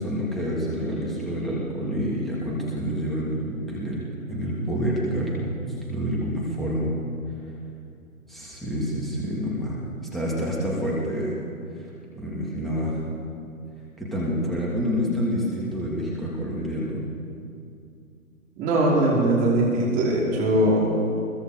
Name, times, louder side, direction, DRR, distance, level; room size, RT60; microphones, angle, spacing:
voice 1, 0.0-4.0 4.3-5.5 5.9-6.9 8.3-9.8 10.1-11.4 11.8-11.9 12.1-13.0 14.0-17.0, equal, ahead, -6 dB, 2.8 m, -28 dB
voice 2, 18.6-20.9, right 1 dB, 20° right, -4 dB, 5.1 m, -21 dB
23.5 x 22.5 x 5.2 m, 2.5 s
figure-of-eight pair, 140°, 43 cm